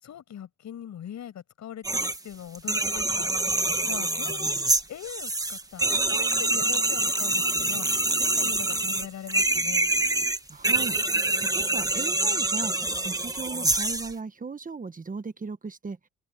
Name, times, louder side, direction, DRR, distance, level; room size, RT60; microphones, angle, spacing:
voice 1, 0.0-3.3 3.9-4.5 4.9-7.9 8.2-9.9, left 10 dB, 65° left, 6.7 m, -41 dB
sound 1, 1.8-2.2 2.6-14.1, right 2 dB, 10° right, 1.7 m, -26 dB
voice 2, 10.5-16.0, right 4 dB, 25° right, 1.4 m, -37 dB
open air
cardioid pair, 90°, 30 cm